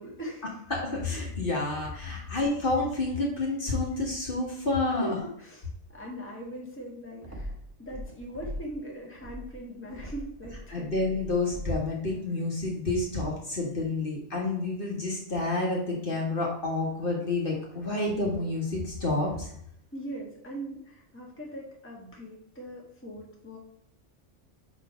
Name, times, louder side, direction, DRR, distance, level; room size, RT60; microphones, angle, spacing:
voice 1, 0.0-0.6 2.0-2.3 4.9-10.9 19.9-23.6, right 1 dB, 10° left, -2 dB, 1.5 m, -41 dB
voice 2, 0.7-5.1 10.7-19.5, left 2 dB, 45° left, -2 dB, 1.7 m, -29 dB
sound 1, 7.2-8.8 9.1-11.9, equal, 15° right, 1.0 m, -41 dB
5.0 x 4.3 x 5.6 m, 0.70 s
omnidirectional pair, 1.2 m